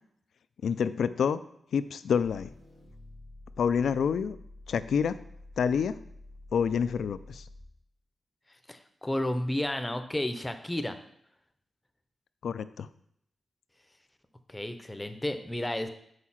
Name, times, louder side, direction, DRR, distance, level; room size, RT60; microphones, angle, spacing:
voice 1, 0.6-1.4 1.7-2.5 3.6-4.4 4.7-5.2 5.6-6.0 6.5-7.4 12.4-12.9, left 7 dB, 85° left, 14 dB, 0.3 m, -27 dB
sound 1, 2.2-7.8, left 1 dB, 85° right, 2.7 m, -49 dB
voice 2, 8.7-11.0 14.5-15.9, left 1 dB, 10° left, 8 dB, 0.6 m, -32 dB
6.5 x 4.8 x 5.7 m, 0.72 s
wide cardioid pair, 120°, 0 cm